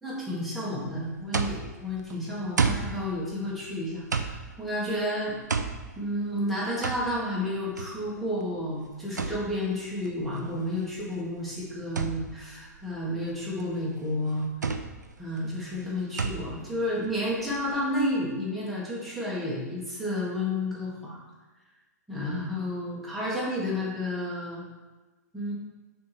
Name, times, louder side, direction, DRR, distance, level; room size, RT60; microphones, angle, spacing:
voice 1, 0.0-5.4 6.0-14.5 15.2-21.2 22.1-24.6 25.3-25.5, left 1 dB, ahead, -7 dB, 2.1 m, -31 dB
sound 1, 0.8-18.1, right 5 dB, 75° right, 0.6 m, -34 dB
6.0 x 4.5 x 4.6 m, 1.2 s
figure-of-eight pair, 110°, 10 cm